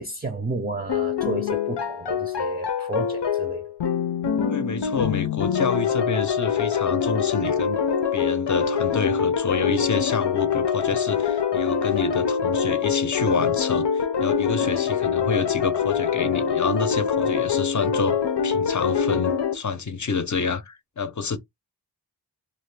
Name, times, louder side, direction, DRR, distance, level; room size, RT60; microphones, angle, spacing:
voice 1, 0.0-3.6, right 3 dB, 25° right, 0.5 m, -32 dB
sound 1, 0.9-19.5, left 7 dB, 85° left, 0.6 m, -24 dB
voice 2, 4.5-7.8 8.1-18.2 18.4-21.4, left 5 dB, 45° left, 0.6 m, -28 dB
2.5 x 2.4 x 3.2 m
wide cardioid pair, 65°, 41 cm